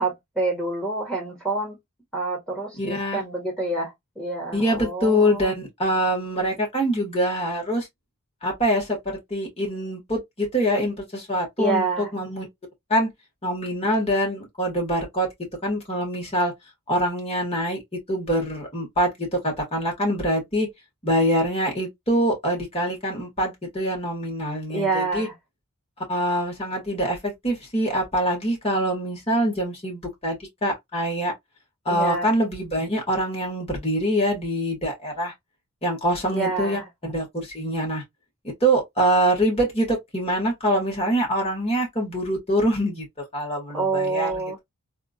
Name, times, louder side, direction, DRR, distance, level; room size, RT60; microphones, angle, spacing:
voice 1, 0.0-1.8 2.1-5.5 11.6-12.1 24.7-25.3 31.9-32.3 36.3-36.9 43.7-44.6, right 3 dB, 5° left, 1.7 m, -27 dB
voice 2, 2.8-3.2 4.5-7.9 8.4-12.5 12.9-13.1 13.4-15.3 15.6-16.5 16.9-17.8 18.1-20.7 21.0-25.3 26.1-31.3 31.8-35.3 35.8-38.0 38.4-43.1 43.3-44.3, equal, 25° left, 1.7 m, -24 dB
3.6 x 2.5 x 2.4 m
head